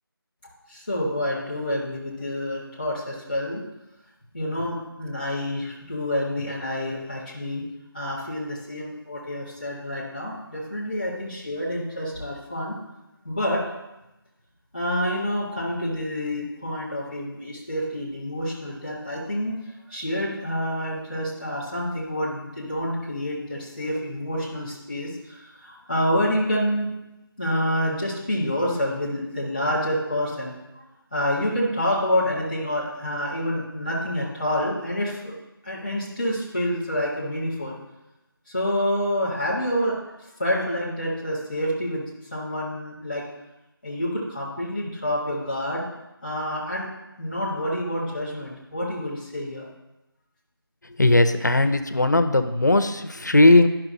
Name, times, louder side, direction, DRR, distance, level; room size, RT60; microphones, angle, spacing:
voice 1, 0.7-3.6 4.3-7.6 7.9-12.7 13.2-13.6 14.7-19.6 19.9-26.9 27.4-35.3 35.6-37.7 38.5-40.1 40.4-42.0 42.3-43.2 43.8-45.8 46.2-46.9 47.2-49.6, equal, ahead, -9 dB, 0.8 m, -28 dB
voice 2, 51.0-53.7, left 2 dB, 50° left, 10 dB, 0.5 m, -18 dB
11.5 x 5.8 x 2.7 m, 0.95 s
figure-of-eight pair, 175°, 13 cm